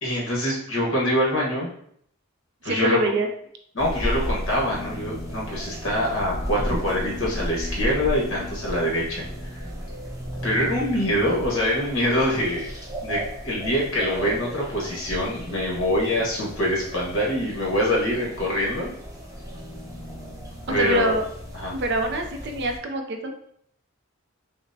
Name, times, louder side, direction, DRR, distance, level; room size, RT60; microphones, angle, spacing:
voice 1, 0.0-1.7 2.6-3.0 3.7-9.2 10.4-12.7 13.0-18.9 20.7-21.1 21.5-21.7, equal, 60° left, -4 dB, 1.3 m, -24 dB
voice 2, 2.6-3.3 7.0-7.2 20.7-21.3 21.7-23.3, right 2 dB, 50° right, 5 dB, 0.4 m, -25 dB
sound 1, 3.8-22.8, equal, 15° right, 0.7 m, -34 dB
5.8 x 2.1 x 2.7 m, 0.68 s
head